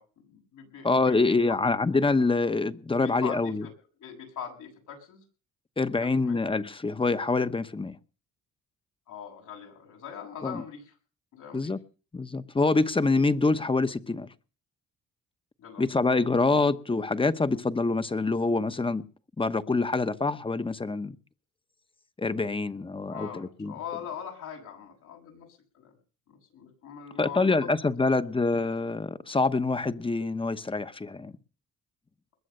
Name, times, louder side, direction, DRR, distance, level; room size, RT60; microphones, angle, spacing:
voice 1, 0.0-1.6 3.0-3.7 4.0-5.2 6.0-6.4 9.1-11.0 11.3-11.7 15.6-15.8 23.1-26.0 26.3-27.7, left 8 dB, 85° left, 7.0 m, -42 dB
voice 2, 0.8-3.7 5.8-8.0 10.4-10.6 11.5-11.8 12.1-14.3 15.8-19.0 19.4-21.2 22.2-23.7 27.2-31.3, left 3 dB, 15° left, 1.0 m, -26 dB
21.0 x 7.8 x 6.6 m
cardioid pair, 90°, 30 cm